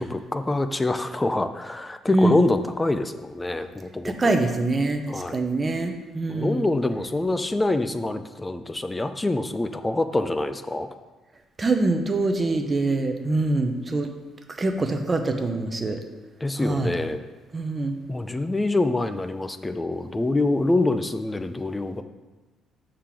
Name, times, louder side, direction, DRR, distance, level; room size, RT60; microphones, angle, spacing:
voice 1, 0.0-4.3 5.1-5.4 6.3-10.9 16.4-17.2 18.1-22.0, left 2 dB, 10° left, 10 dB, 0.4 m, -25 dB
voice 2, 4.0-6.7 11.6-14.1 14.6-16.0 16.6-16.9 17.5-18.0, right 2 dB, 20° right, 5 dB, 0.7 m, -24 dB
6.5 x 3.7 x 5.8 m, 1.2 s
cardioid pair, 130°, 0 cm